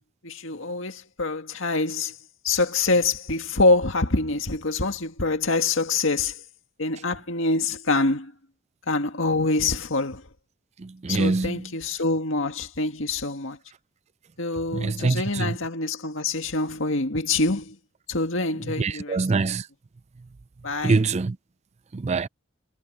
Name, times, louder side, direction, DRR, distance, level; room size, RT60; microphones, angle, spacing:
voice 1, 0.2-2.1 2.4-6.4 6.8-8.3 8.9-10.2 11.1-13.6 14.4-17.8 18.1-19.2 20.6-21.0, left 3 dB, 65° left, 2.1 m, -25 dB
voice 2, 10.8-11.7 14.7-15.6 18.8-19.7 20.8-21.4 21.9-22.3, right 3 dB, 30° right, 0.4 m, -24 dB
head